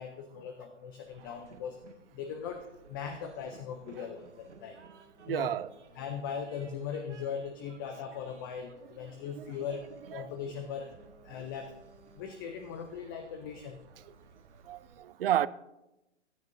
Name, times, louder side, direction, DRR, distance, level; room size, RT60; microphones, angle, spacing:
voice 1, 0.0-1.8 2.1-2.6 2.9-4.8 5.3-5.5 5.9-9.8 10.1-10.9 11.2-11.7 12.2-13.8, left 7 dB, 20° left, 0.4 m, -39 dB
Train, 1.1-14.9, right 4 dB, 80° right, 1.3 m, -58 dB
sound 1, 2.9-8.3 8.8-13.7, equal, ahead, 0.9 m, -62 dB
voice 2, 5.3-5.7 9.4-9.5 14.7-15.5, right 12 dB, 55° right, 0.4 m, -30 dB
15.5 x 9.4 x 2.6 m
hypercardioid pair, 135°, 35 cm